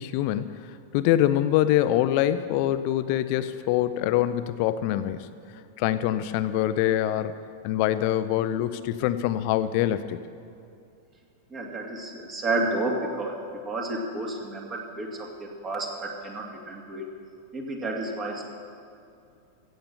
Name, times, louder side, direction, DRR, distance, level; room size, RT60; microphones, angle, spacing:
voice 1, 0.0-5.3 5.8-7.4 7.6-10.2, left 12 dB, 45° left, 12 dB, 0.6 m, -24 dB
voice 2, 11.5-17.0 17.5-18.4, right 2 dB, 25° right, 0 dB, 2.4 m, -31 dB
15.5 x 7.9 x 7.3 m, 2.4 s
figure-of-eight pair, 90°, 0 cm